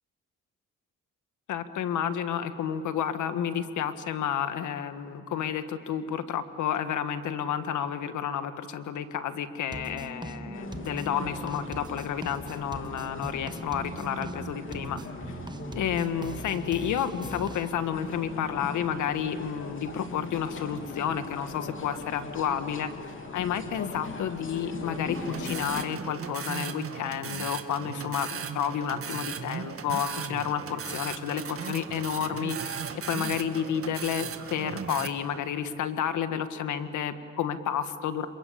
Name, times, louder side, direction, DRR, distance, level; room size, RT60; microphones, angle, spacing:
voice 1, 1.5-15.0 15.7-32.8 33.1-38.3, left 8 dB, 75° left, 10 dB, 1.6 m, -31 dB
sound 1, 9.7-17.7, right 2 dB, 15° right, 1.4 m, -40 dB
sound 2, 10.5-25.9, left 4 dB, 40° left, 3.2 m, -40 dB
sound 3, 25.1-35.1, right 7 dB, 50° right, 1.8 m, -37 dB
27.0 x 23.5 x 8.7 m, 2.4 s
cardioid pair, 90°, 30 cm